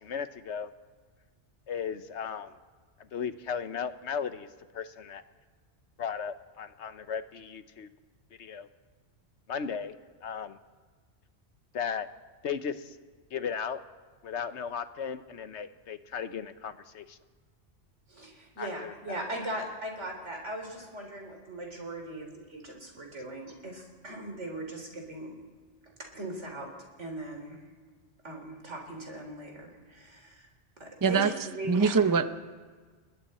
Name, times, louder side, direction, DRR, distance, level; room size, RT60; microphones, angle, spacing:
voice 1, 0.0-0.7 1.7-2.5 3.1-4.5 4.7-5.2 6.0-7.9 8.4-8.7 9.5-9.9 10.2-10.6 11.7-12.1 12.4-13.0 13.3-13.8 14.2-17.2 18.6-19.2, left 7 dB, 75° left, 11 dB, 1.2 m, -36 dB
voice 2, 18.1-25.3 26.0-26.7 27.0-27.7 28.2-30.5 30.8-32.0, right 1 dB, 85° right, 2 dB, 4.0 m, -39 dB
voice 3, 31.0-31.3 31.7-32.4, right 5 dB, 20° right, 10 dB, 0.6 m, -23 dB
30.0 x 20.0 x 4.3 m, 1.5 s
omnidirectional pair, 1.2 m